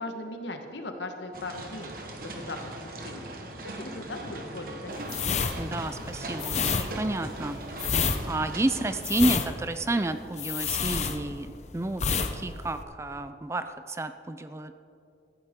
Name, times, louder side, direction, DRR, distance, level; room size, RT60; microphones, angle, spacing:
voice 1, 0.0-1.9 2.2-3.3 3.6-5.0, left 2 dB, 80° left, 5 dB, 1.4 m, -38 dB
sound 1, 1.3-9.0, right 2 dB, 50° right, 1.4 m, -40 dB
sound 2, 5.0-11.6 11.9-12.3 12.6-12.8, left 6 dB, 40° left, 0.7 m, -28 dB
voice 2, 5.6-7.6 8.3-14.7, right 2 dB, 15° right, 10 dB, 0.4 m, -30 dB
15.5 x 14.0 x 3.7 m, 2.7 s
head